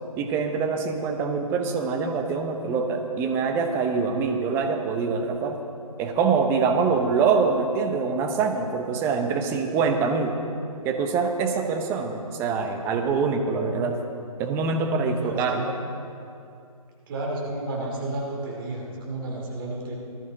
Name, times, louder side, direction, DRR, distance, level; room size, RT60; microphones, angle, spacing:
voice 1, 0.2-5.6 6.0-10.4 10.8-14.0 14.4-15.6, right 5 dB, 15° right, 4 dB, 0.7 m, -24 dB
voice 2, 15.0-15.7 17.1-20.0, right 2 dB, 35° right, -1 dB, 2.4 m, -32 dB
19.0 x 13.0 x 3.9 m, 2.5 s
figure-of-eight pair, 145°, 19 cm